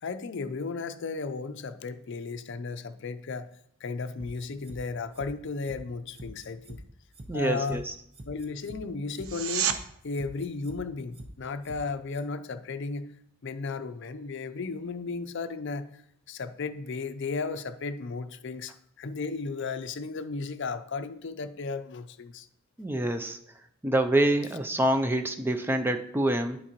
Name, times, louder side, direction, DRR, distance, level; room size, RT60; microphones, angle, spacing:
voice 1, 0.0-3.5 3.8-6.8 7.3-7.8 8.3-9.7 10.0-13.1 13.4-16.0 16.3-18.7 19.0-22.5, left 4 dB, 55° left, 10 dB, 0.5 m, -34 dB
sound 1, 4.2-4.8 5.1-5.3 5.6-5.8 6.1-6.8 7.1-7.3 7.6-7.8 8.1-8.8 9.1-9.3 9.6-9.8 10.1-10.8 11.1-11.3 11.6-11.8 12.1-12.2, right 1 dB, 30° right, 0.7 m, -45 dB
voice 2, 7.3-7.9 22.8-23.4 23.8-26.6, right 1 dB, 10° right, 7 dB, 0.3 m, -26 dB
sound 2, 9.2-9.8 21.1-21.2, right 8 dB, 85° right, 0.6 m, -29 dB
11.0 x 4.5 x 2.9 m, 0.73 s
head